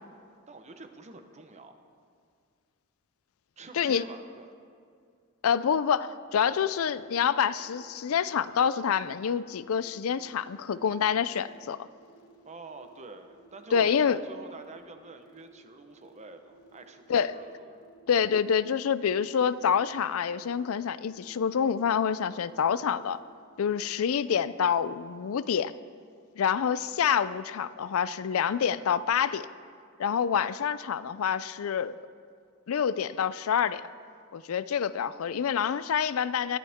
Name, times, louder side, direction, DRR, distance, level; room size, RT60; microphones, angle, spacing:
voice 1, 0.5-1.8 3.6-4.5 12.4-17.9, right 3 dB, 35° right, 7 dB, 1.0 m, -47 dB
voice 2, 5.4-11.9 13.7-14.2 17.1-17.4 18.1-23.2 23.6-25.7 26.4-29.5 30.0-32.0 32.7-33.9 34.3-36.6, left 7 dB, 80° left, 16 dB, 0.4 m, -27 dB
sound 1, 6.2-23.9, right 4 dB, 20° left, 2.3 m, -58 dB
21.0 x 13.0 x 3.6 m, 2.2 s
head